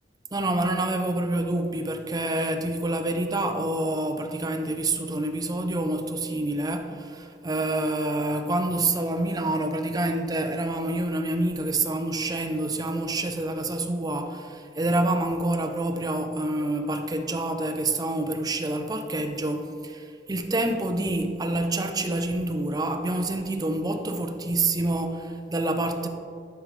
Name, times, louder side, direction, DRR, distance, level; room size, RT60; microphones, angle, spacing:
voice 1, 0.3-26.1, right 2 dB, 20° right, 5 dB, 0.5 m, -27 dB
11.5 x 4.8 x 3.2 m, 2.3 s
head